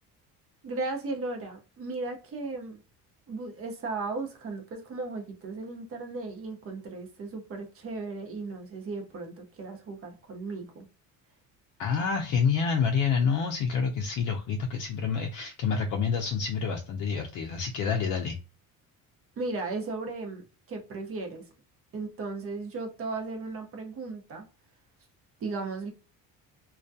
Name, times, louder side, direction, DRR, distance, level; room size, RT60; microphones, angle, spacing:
voice 1, 0.6-2.8 3.3-10.9 19.4-21.4 21.9-24.4 25.4-25.9, right 3 dB, 40° right, 0.8 m, -36 dB
voice 2, 11.8-18.4, left 6 dB, 55° left, 0.5 m, -28 dB
2.3 x 2.1 x 2.6 m
cardioid pair, 120°, 37 cm